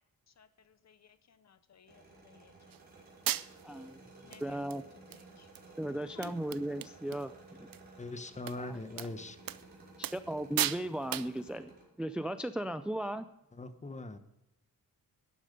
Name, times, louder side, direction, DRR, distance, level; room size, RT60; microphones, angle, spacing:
voice 1, 0.3-2.8 4.2-5.5 6.0-6.3, left 7 dB, 45° left, 13 dB, 0.6 m, -58 dB
sound 1, 1.9-11.8, right 2 dB, 25° right, 4.7 m, -55 dB
sound 2, 2.7-2.8 3.3-3.8 4.3-4.4 4.7-5.2 5.6-5.7 5.9-6.0 6.2-7.2 7.5-7.8 8.5-8.6 9.0-9.1 9.5-9.6 10.0-10.3 10.6-10.8 11.1-11.4, right 12 dB, 70° right, 0.6 m, -35 dB
voice 2, 3.6-4.8 5.8-7.3 7.6-7.7 8.6-9.1 10.1-11.7 12.0-13.3, right 1 dB, 5° right, 11 dB, 0.4 m, -37 dB
voice 3, 8.0-9.4 13.6-14.2, left 2 dB, 20° left, 10 dB, 1.0 m, -41 dB
12.0 x 9.9 x 5.2 m, 0.88 s
wide cardioid pair, 130°, 36 cm